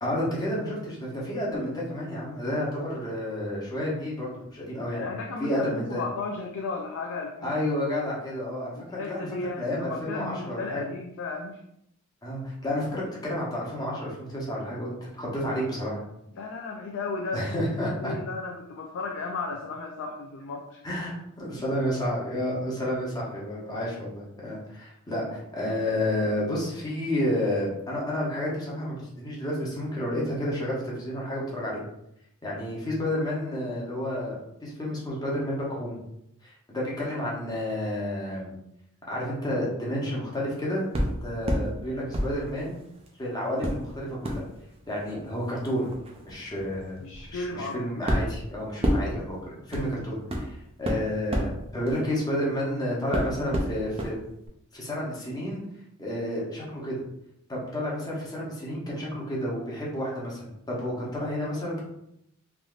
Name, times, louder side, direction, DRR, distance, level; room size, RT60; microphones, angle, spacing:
voice 1, 0.0-5.0 5.4-6.0 7.4-9.3 9.6-10.8 12.2-16.0 17.3-18.1 20.8-31.8 32.4-36.0 36.7-38.5 39.1-42.8 43.2-44.4 44.9-45.9 46.3-47.0 47.3-49.4 49.7-50.5 50.8-54.2 54.7-55.6 56.0-57.0 57.5-61.8, left 1 dB, 15° left, -5 dB, 0.9 m, -30 dB
voice 2, 5.0-7.6 8.7-11.6 16.3-20.8 47.0-47.8, left 3 dB, 60° left, 1 dB, 0.4 m, -35 dB
sound 1, 40.9-41.7 42.1-43.1 43.6-52.7 53.1-54.1 54.5-54.6, equal, 25° right, 0.5 m, -31 dB
3.4 x 2.6 x 2.4 m, 0.78 s
head